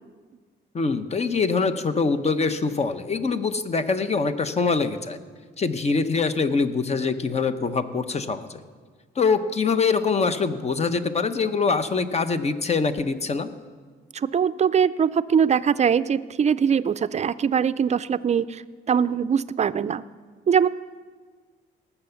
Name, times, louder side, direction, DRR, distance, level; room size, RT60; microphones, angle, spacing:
voice 1, 0.7-5.2 5.6-8.6 9.2-13.5, left 4 dB, 35° left, 10 dB, 0.9 m, -24 dB
voice 2, 14.1-20.0 20.5-20.7, right 7 dB, 35° right, 15 dB, 0.5 m, -22 dB
18.5 x 7.0 x 7.1 m, 1.5 s
cardioid pair, 90°, 20 cm